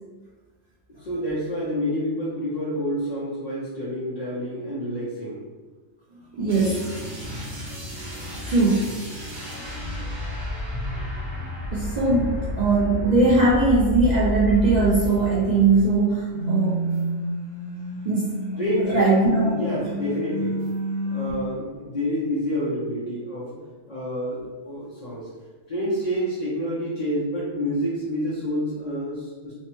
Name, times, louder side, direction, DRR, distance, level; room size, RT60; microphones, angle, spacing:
voice 1, 0.9-5.5 18.6-19.1 19.4-20.6 21.0-23.6 23.9-25.3 25.7-29.5, equal, 50° left, -9 dB, 0.5 m, -28 dB
voice 2, 6.3-7.1 7.8-8.0 8.5-8.9 11.7-16.8 18.0-18.3 18.9-19.5, right 3 dB, 70° right, -7 dB, 0.4 m, -20 dB
sound 1, 6.5-16.0 16.3-21.3, equal, 45° right, 0.9 m, -30 dB
3.1 x 2.0 x 3.0 m, 1.3 s
omnidirectional pair, 1.3 m